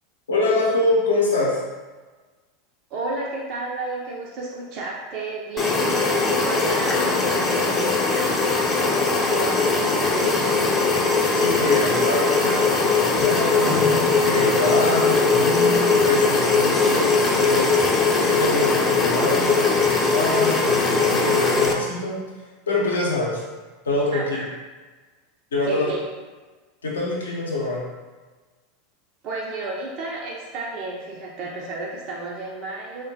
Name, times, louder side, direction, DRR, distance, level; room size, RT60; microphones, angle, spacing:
voice 1, 0.3-1.6 11.3-13.8 14.2-17.7 18.1-22.2 22.7-23.4 23.8-24.4 25.5-25.9 26.8-27.8, left 2 dB, 75° left, -3 dB, 0.7 m, -24 dB
voice 2, 2.9-10.8 24.1-24.5 25.6-26.0 29.2-33.1, right 3 dB, 45° right, -4 dB, 0.4 m, -32 dB
sound 1, 5.6-21.7, left 3 dB, 20° left, 0.5 m, -20 dB
3.5 x 2.1 x 2.7 m, 1.3 s
figure-of-eight pair, 85°, 0 cm